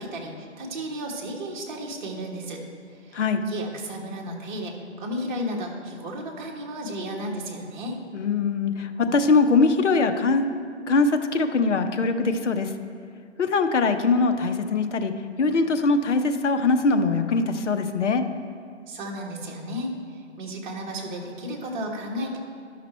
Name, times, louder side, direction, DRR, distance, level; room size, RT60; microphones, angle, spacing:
voice 1, 0.0-2.6 2.9-8.0 18.9-22.4, equal, 40° right, -1 dB, 1.5 m, -33 dB
voice 2, 8.1-10.5 10.9-12.7 13.4-15.1 15.4-18.2, left 4 dB, 70° left, 7 dB, 0.9 m, -22 dB
11.5 x 6.0 x 4.3 m, 2.3 s
hypercardioid pair, 150°, 37 cm